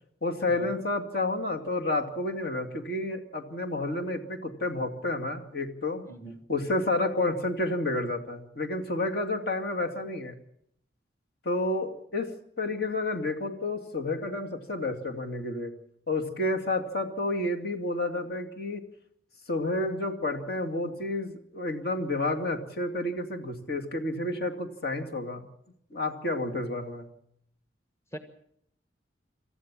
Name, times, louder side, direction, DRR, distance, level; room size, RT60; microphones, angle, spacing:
voice 1, 0.2-6.0 6.5-10.3 11.4-12.3 12.6-15.7 16.1-18.8 19.5-25.4 25.9-27.1, left 2 dB, 55° left, 4 dB, 2.5 m, -30 dB
voice 2, 6.1-6.4 28.1-28.2, right 1 dB, 15° left, 7 dB, 1.4 m, -41 dB
27.0 x 14.0 x 7.5 m, 0.72 s
head